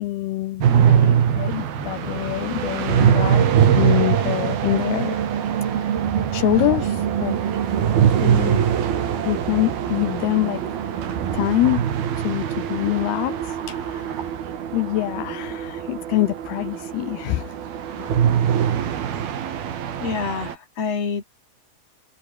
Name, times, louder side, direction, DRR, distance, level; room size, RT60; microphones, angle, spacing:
voice 1, 0.0-5.2 5.8-5.9 6.3-7.4 8.2-8.6 9.2-11.8 12.2-14.3 14.7-17.6 18.0-18.2, left 17 dB, 75° left, 2.4 m, -25 dB
sound 1, 0.6-20.5, right 9 dB, 55° right, 4.1 m, -22 dB
voice 2, 20.0-21.2, left 6 dB, 35° left, 4.4 m, -27 dB
omnidirectional pair, 5.5 m